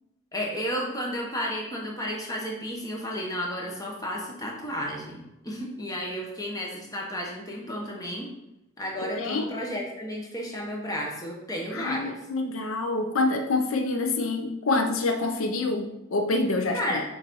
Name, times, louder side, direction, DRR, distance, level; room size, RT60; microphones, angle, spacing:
voice 1, 0.3-8.3 8.8-12.1 16.7-17.0, equal, 15° left, -1 dB, 1.2 m, -32 dB
voice 2, 9.0-9.5 11.7-17.0, left 2 dB, 75° left, 5 dB, 0.6 m, -27 dB
6.8 x 4.0 x 4.7 m, 0.89 s
head